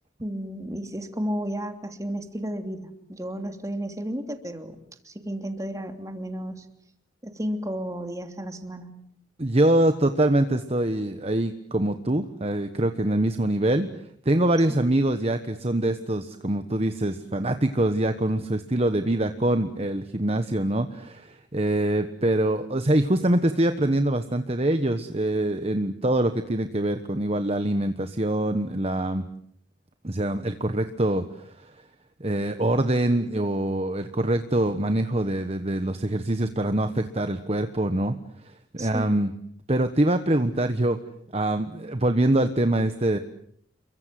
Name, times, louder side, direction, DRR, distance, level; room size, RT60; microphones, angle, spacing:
voice 1, 0.2-4.8 5.0-6.7 7.2-8.9 14.7-14.8 38.8-39.2, equal, 20° right, 6 dB, 3.0 m, -33 dB
voice 2, 9.4-13.9 14.2-29.2 30.0-31.7 32.2-38.2 38.7-39.3 39.7-41.0 41.3-43.2, right 1 dB, 35° right, 8 dB, 1.3 m, -24 dB
29.0 x 23.5 x 7.7 m, 0.66 s
head